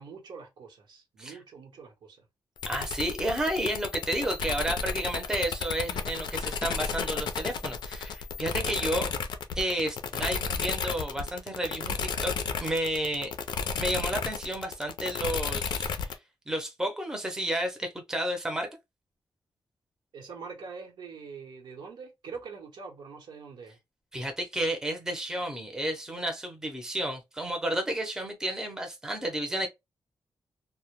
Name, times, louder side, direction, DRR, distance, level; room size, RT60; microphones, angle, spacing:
voice 1, 0.0-2.2 20.1-23.8, right 5 dB, 80° right, 0.9 m, -44 dB
sound 1, 2.6-16.1, left 6 dB, 80° left, 0.4 m, -33 dB
voice 2, 2.7-9.1 9.6-13.3 13.8-16.1 16.5-18.7 24.1-29.7, right 1 dB, 10° right, 0.6 m, -31 dB
2.1 x 2.1 x 2.9 m
wide cardioid pair, 130°, 8 cm